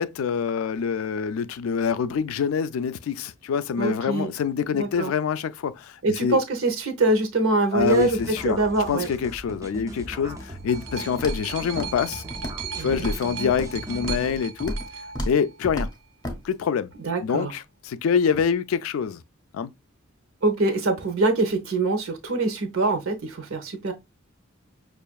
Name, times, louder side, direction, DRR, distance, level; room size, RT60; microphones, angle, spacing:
voice 1, 0.0-6.4 7.7-8.6 8.9-12.2 12.8-14.8 15.3-15.9 16.4-16.9 17.2-19.2 19.5-19.7, left 6 dB, 80° left, 0.3 m, -26 dB
voice 2, 3.8-4.3 4.8-5.1 6.0-8.2 8.4-9.1 12.8-13.1 17.0-17.5 20.4-23.9, right 2 dB, 90° right, 0.8 m, -24 dB
sound 1, 7.8-14.4, right 1 dB, 15° right, 0.4 m, -39 dB
sound 2, 10.2-16.0 16.9-17.0, right 7 dB, 65° right, 0.5 m, -38 dB
Walk footsteps, 11.2-11.5 11.8-12.1 12.3-12.7 12.9-13.8 14.0-14.3 14.6-14.9 15.1-15.4 15.6-15.9 16.2-16.4, equal, 20° left, 0.7 m, -31 dB
5.5 x 2.4 x 2.2 m
head